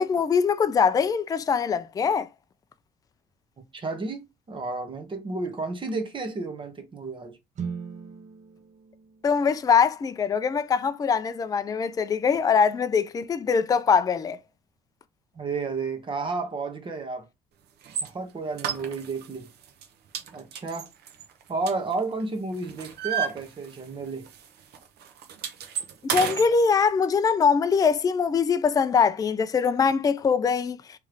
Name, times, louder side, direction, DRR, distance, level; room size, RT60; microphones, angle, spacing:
voice 1, 0.0-2.3 9.2-14.4 26.0-31.0, left 6 dB, 20° left, 0.4 m, -22 dB
voice 2, 3.7-7.4 15.3-17.3 18.0-19.5 20.3-20.9 21.5-24.3, right 3 dB, 30° right, 1.2 m, -32 dB
sound 1, 7.5-11.6, right 6 dB, 45° right, 0.7 m, -41 dB
sound 2, 17.8-18.1 18.6-19.3 19.6-19.9 20.1-22.2 22.5-24.0 24.3-24.5 24.7-26.5, right 8 dB, 70° right, 0.9 m, -32 dB
3.5 x 3.2 x 3.2 m
cardioid pair, 110°, 17 cm